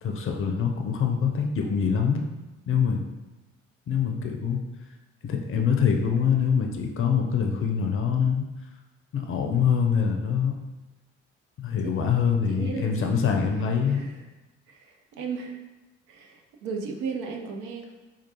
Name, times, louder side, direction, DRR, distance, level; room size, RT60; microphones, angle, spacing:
voice 1, 0.0-2.2 2.7-3.0 3.9-4.6 5.2-8.4 9.1-10.5 11.6-14.0, left 7 dB, 40° left, 3 dB, 0.6 m, -24 dB
voice 2, 12.5-13.1 13.9-14.2 14.7-15.6 16.1-17.9, right 5 dB, 60° right, 3 dB, 0.6 m, -35 dB
4.4 x 2.4 x 2.9 m, 1.1 s
figure-of-eight pair, 45°, 35 cm